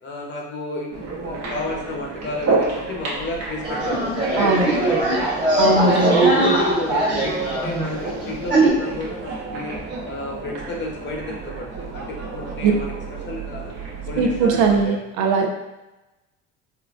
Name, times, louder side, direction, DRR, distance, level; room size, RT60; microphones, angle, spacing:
voice 1, 0.0-5.2 5.6-9.7 10.0-12.9 13.2-13.7 14.1-15.0, left 2 dB, 40° left, -1 dB, 0.8 m, -31 dB
sound 1, 0.9-14.9, right 3 dB, 60° right, 1.0 m, -31 dB
sound 2, 3.6-8.7, right 2 dB, 35° right, 1.4 m, -20 dB
voice 2, 4.4-4.7 5.6-6.4 12.6-12.7 14.2-15.5, right 4 dB, 80° right, 3 dB, 0.6 m, -19 dB
3.7 x 2.2 x 2.4 m, 1.0 s
supercardioid pair, 100°, 30 cm